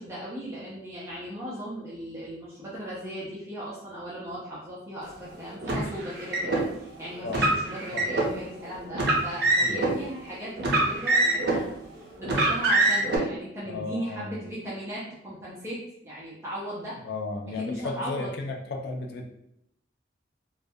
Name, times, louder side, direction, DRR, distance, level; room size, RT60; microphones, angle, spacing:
voice 1, 0.0-11.7 11.9-17.0 17.6-18.3, equal, 15° right, -8 dB, 0.5 m, -37 dB
Car, 5.6-6.6 7.3-8.3 8.9-9.9 10.6-11.7 12.2-13.2, right 2 dB, 60° right, 0.6 m, -24 dB
voice 2, 13.7-14.4 17.0-19.3, left 3 dB, 60° left, 3 dB, 0.4 m, -34 dB
2.3 x 2.2 x 2.6 m, 0.77 s
head